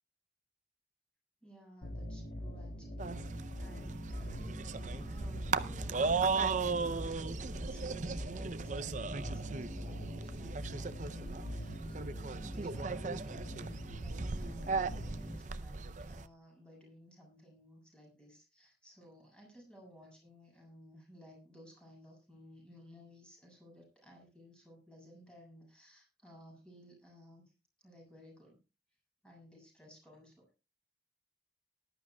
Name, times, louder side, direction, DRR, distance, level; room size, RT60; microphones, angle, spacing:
voice 1, 1.4-3.2 3.6-27.4 27.8-28.6 29.2-30.5, equal, 5° left, -1 dB, 7.3 m, -58 dB
sound 1, 1.8-15.4, equal, 65° left, 2.8 m, -44 dB
sound 2, 3.0-16.3, right 4 dB, 45° right, 0.6 m, -37 dB
19.0 x 12.0 x 2.3 m, 0.30 s
head